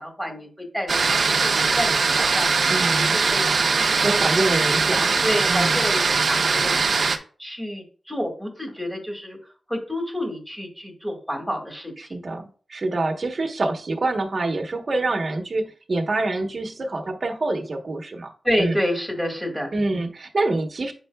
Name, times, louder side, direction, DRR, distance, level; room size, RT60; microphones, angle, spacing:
voice 1, 0.0-3.4 3.7-4.2 5.0-6.0 6.3-6.7 7.4-9.4 9.7-12.2 18.4-19.7, equal, ahead, 3 dB, 1.8 m, -29 dB
sound 1, 0.9-7.2, right 4 dB, 65° right, 0.7 m, -21 dB
voice 2, 2.7-3.2 4.0-5.1 5.5-5.8 12.0-18.3 18.6-18.7 19.7-20.9, right 2 dB, 45° right, 2 dB, 1.1 m, -26 dB
8.4 x 5.5 x 2.3 m, 0.40 s
wide cardioid pair, 90°, 0 cm